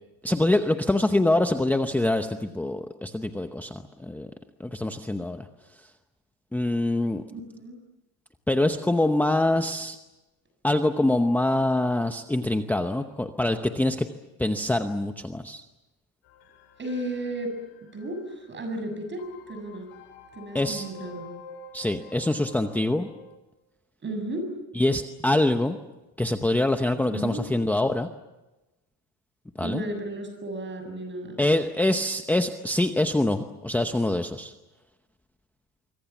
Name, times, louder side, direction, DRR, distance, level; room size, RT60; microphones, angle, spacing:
voice 1, 0.2-4.3 4.6-5.5 6.5-7.2 8.5-10.0 10.6-14.1 14.4-15.6 20.5-20.8 21.7-23.1 24.8-25.8 26.2-28.1 29.6-29.8 31.4-34.5, left 1 dB, 5° left, 6 dB, 0.8 m, -25 dB
voice 2, 7.3-7.8 16.8-17.5 17.9-19.9 20.3-21.2 24.0-24.5 27.1-27.5 29.6-31.4, right 1 dB, 25° right, 7 dB, 7.3 m, -33 dB
sound 1, 16.2-23.4, left 4 dB, 65° left, 7.0 m, -48 dB
26.0 x 24.0 x 7.2 m, 1.0 s
cardioid pair, 145°, 47 cm